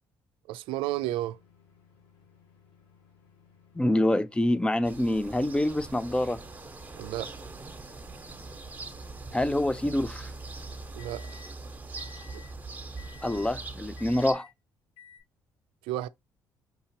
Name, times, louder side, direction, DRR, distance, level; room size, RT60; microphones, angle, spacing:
voice 1, 0.5-1.4 7.0-7.3 11.0-11.3 15.9-16.1, right 14 dB, 90° right, 0.3 m, -32 dB
sound 1, 0.8-11.5 12.0-12.5 13.0-13.5 14.0-14.5 15.0-15.2, left 7 dB, 80° left, 2.1 m, -58 dB
voice 2, 3.8-6.4 9.3-10.3 13.2-14.5, left 1 dB, 10° left, 0.4 m, -26 dB
sound 2, 4.8-14.3, right 3 dB, 20° right, 1.3 m, -42 dB
5.8 x 2.7 x 2.9 m
cardioid pair, 85°, 9 cm